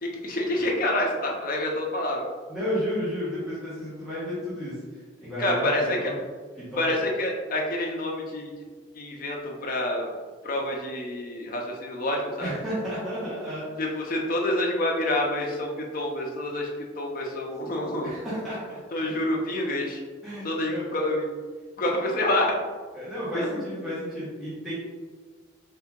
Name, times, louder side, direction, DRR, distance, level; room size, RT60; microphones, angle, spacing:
voice 1, 0.0-2.2 5.4-6.1 6.8-8.5 8.9-10.1 10.4-12.6 13.8-16.7 17.0-18.2 18.9-20.0 20.4-21.3 21.8-22.6 23.3-23.8, left 1 dB, 45° left, 0 dB, 0.5 m, -27 dB
voice 2, 2.5-4.7 5.2-5.7 6.0-6.2 6.6-6.8 12.4-13.7 18.0-18.8 20.2-20.9 22.9-24.7, equal, ahead, -12 dB, 1.2 m, -32 dB
3.5 x 2.8 x 3.6 m, 1.4 s
head